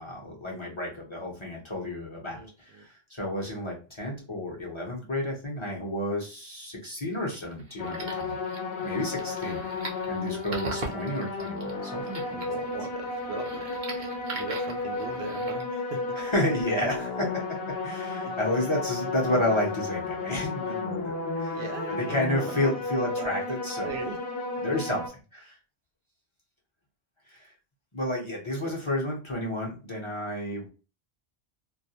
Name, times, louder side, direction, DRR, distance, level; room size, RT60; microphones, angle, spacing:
voice 1, 0.0-8.4 8.8-9.6 10.1-12.5 16.2-21.6 21.9-23.9 24.6-25.0 25.3-25.5 27.3-27.5 27.9-30.7, left 1 dB, 30° left, -3 dB, 0.7 m, -31 dB
voice 2, 2.3-2.9 12.5-16.0 18.2-18.4 21.5-22.7 23.1-23.6 23.8-24.2 28.6-28.7, right 4 dB, 80° right, 4 dB, 0.8 m, -39 dB
sound 1, 7.1-15.6, right 3 dB, 55° right, 0.7 m, -42 dB
sound 2, 7.8-25.1, left 3 dB, 75° left, 0.8 m, -33 dB
2.3 x 2.1 x 2.7 m, 0.34 s
omnidirectional pair, 1.0 m